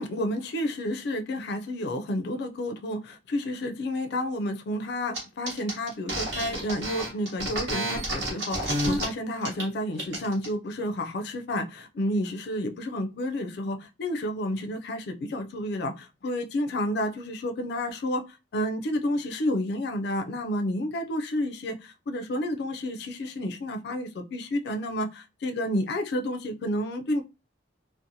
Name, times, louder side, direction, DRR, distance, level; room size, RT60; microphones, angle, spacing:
voice 1, 0.0-27.2, left 1 dB, 60° left, 0.4 m, -30 dB
sound 1, 5.1-5.2 5.5-9.0 9.4-9.6 10.0-10.5, right 1 dB, 65° right, 1.1 m, -30 dB
2.6 x 2.0 x 2.6 m
head